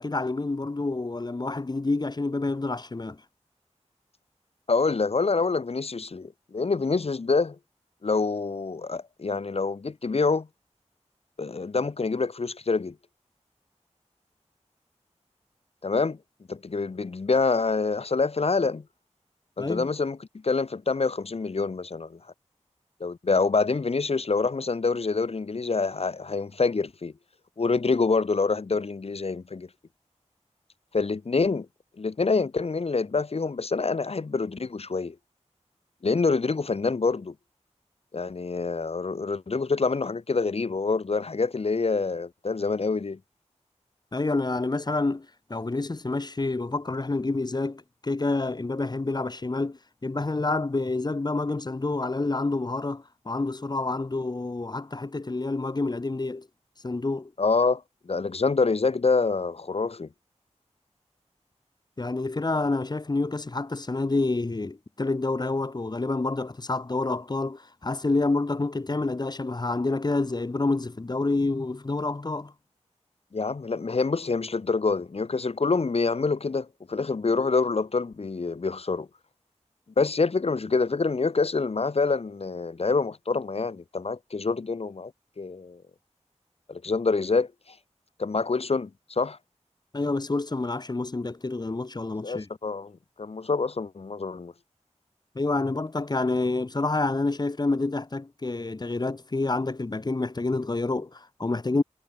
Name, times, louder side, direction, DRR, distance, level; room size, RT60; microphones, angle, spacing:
voice 1, 0.0-3.2 19.6-19.9 44.1-56.5 56.8-57.3 62.0-72.5 89.9-92.5 95.4-101.8, left 3 dB, 35° left, 1.8 m, -28 dB
voice 2, 4.7-7.6 8.0-10.5 11.4-13.0 15.8-16.2 16.5-18.8 19.6-20.2 20.4-22.2 23.0-27.1 27.6-29.7 30.9-31.7 32.0-35.2 36.0-37.3 38.1-43.2 57.4-60.1 73.3-79.1 80.0-85.1 85.4-85.8 86.7-87.5 88.2-89.4 92.2-92.9 93.2-94.5, left 4 dB, 55° left, 1.7 m, -26 dB
wide cardioid pair, 85°, 12 cm